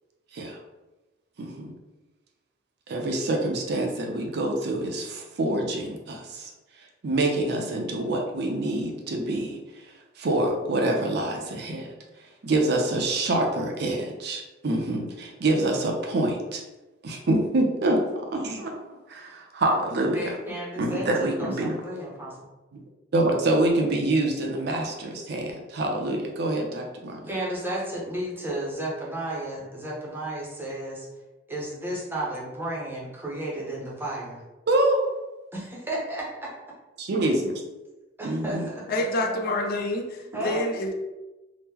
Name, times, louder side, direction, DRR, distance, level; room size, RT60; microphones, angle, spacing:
voice 1, 1.4-1.7 2.9-6.5 7.0-9.6 10.2-11.9 12.4-16.6 17.0-18.7 19.1-20.4 20.8-21.8 23.1-27.2 34.7-35.0 37.1-37.5 38.2-38.7, right 2 dB, 55° right, 1 dB, 0.4 m, -26 dB
voice 2, 20.1-22.3 27.3-31.0 31.5-34.4 35.5-36.5 38.2-39.6 40.3-40.7, right 1 dB, 10° right, -4 dB, 0.6 m, -33 dB
voice 3, 38.9-40.9, left 1 dB, 50° left, 4 dB, 0.4 m, -27 dB
2.8 x 2.0 x 3.5 m, 1.1 s
head